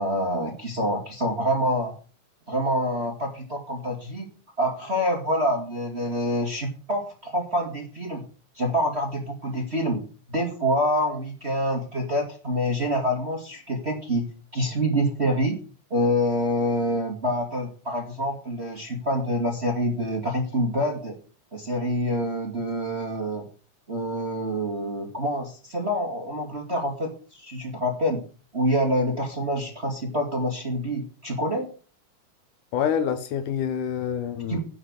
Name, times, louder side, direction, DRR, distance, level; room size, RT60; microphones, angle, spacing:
voice 1, 0.0-1.9 2.5-4.3 4.6-8.2 8.6-10.0 10.3-14.3 14.5-15.6 15.9-21.2 21.5-23.5 23.9-28.2 28.5-31.7 34.5-34.6, equal, 25° right, 1.7 m, -26 dB
voice 2, 32.7-34.6, left 8 dB, 70° left, 2.5 m, -26 dB
10.0 x 5.8 x 8.0 m
omnidirectional pair, 3.9 m